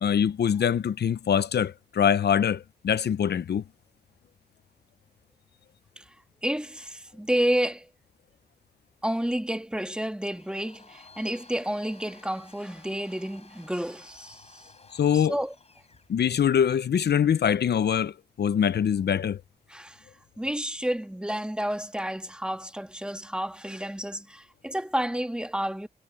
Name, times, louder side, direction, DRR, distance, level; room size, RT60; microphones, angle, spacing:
voice 1, 0.0-3.6 14.9-15.4 16.1-19.4, left 8 dB, 80° left, 0.6 m, -24 dB
voice 2, 6.4-7.9 9.0-14.7 15.1-15.5 19.7-20.0 20.4-25.9, right 1 dB, 5° right, 1.6 m, -30 dB
Domestic sounds home sounds, 10.2-16.1, left 3 dB, 35° left, 7.9 m, -54 dB
wide cardioid pair, 95°, 17 cm